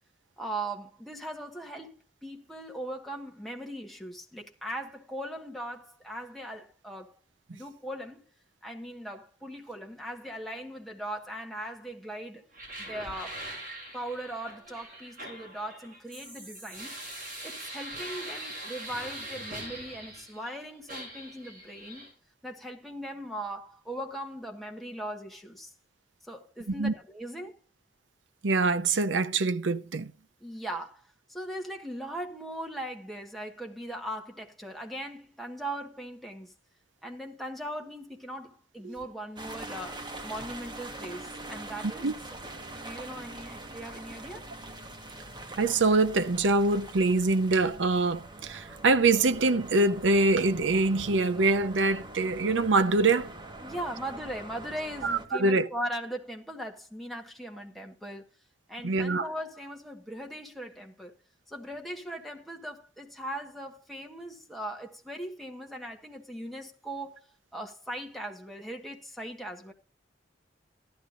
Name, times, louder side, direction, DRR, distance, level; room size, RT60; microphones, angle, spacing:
voice 1, 0.4-1.9 2.2-7.1 7.5-8.2 8.6-12.4 12.8-13.5 13.9-17.0 17.4-22.1 22.4-25.7 26.2-27.6 30.4-31.0 31.3-36.5 37.0-42.1 42.7-44.4 53.6-58.3 58.7-61.1 61.5-67.2 67.5-69.7, right 1 dB, ahead, 1.5 m, -39 dB
sound 1, 12.5-20.5 20.9-22.1, right 1 dB, 50° right, 7.8 m, -42 dB
voice 2, 28.4-30.1 38.8-38.9 42.0-42.1 45.6-53.3 55.0-55.7 58.8-59.2, right 3 dB, 75° right, 0.7 m, -24 dB
sound 2, 39.4-55.3, right 2 dB, 25° right, 1.4 m, -43 dB
14.5 x 11.5 x 2.6 m
head